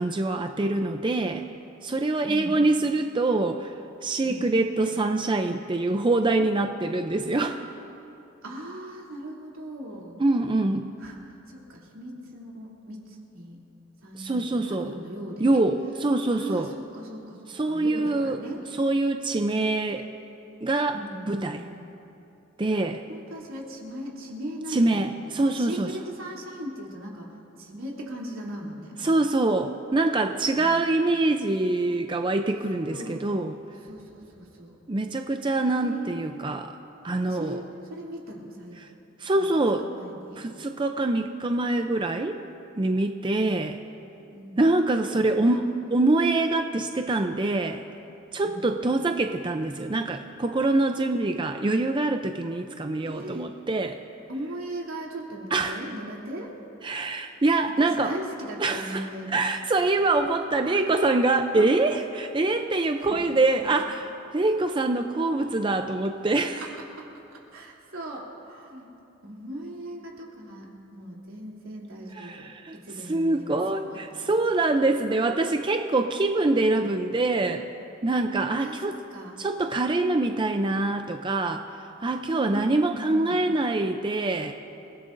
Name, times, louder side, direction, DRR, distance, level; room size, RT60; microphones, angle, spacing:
voice 1, 0.0-1.4 1.8-3.7 4.0-7.7 10.2-10.9 14.2-14.9 15.4-16.7 17.5-18.4 18.8-20.1 20.6-21.0 21.3-21.7 22.6-23.0 24.7-25.9 29.0-33.5 34.9-36.7 37.0-37.6 39.2-39.9 40.4-42.4 42.8-43.8 44.6-45.6 45.9-47.9 48.3-54.0 55.5-55.8 56.8-58.1 58.6-59.0 59.3-64.1 64.3-66.6 72.2-72.8 73.1-77.7 78.0-78.9 79.4-81.6 82.0-84.5, right 2 dB, 25° right, 6 dB, 0.5 m, -24 dB
voice 2, 2.2-2.6 4.2-4.5 8.4-10.2 11.0-13.6 14.0-15.6 16.3-18.6 20.9-21.9 22.7-25.1 25.5-29.0 30.5-30.8 32.9-33.3 33.8-34.8 35.6-36.4 37.3-37.6 37.9-38.8 39.3-39.5 39.8-40.4 44.3-44.6 45.1-45.7 48.4-48.7 53.0-53.5 54.3-56.5 56.9-57.0 57.8-59.5 60.7-61.0 61.5-61.7 63.0-63.3 63.6-63.7 66.6-68.9 69.2-74.4 74.9-75.5 78.6-79.4 82.2-83.5, equal, 80° right, -3 dB, 3.0 m, -39 dB
28.0 x 17.0 x 2.6 m, 2.8 s
head